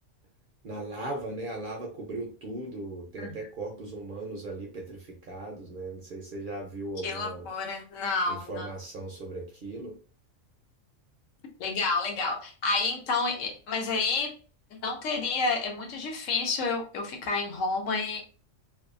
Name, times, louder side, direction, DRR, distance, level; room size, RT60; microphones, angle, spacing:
voice 1, 0.6-7.5 8.3-9.9, right 2 dB, 55° right, 0 dB, 0.6 m, -38 dB
voice 2, 7.0-8.7 11.6-14.3 14.7-18.2, left 3 dB, 80° left, 2 dB, 1.1 m, -30 dB
2.7 x 2.2 x 2.4 m, 0.38 s
omnidirectional pair, 1.3 m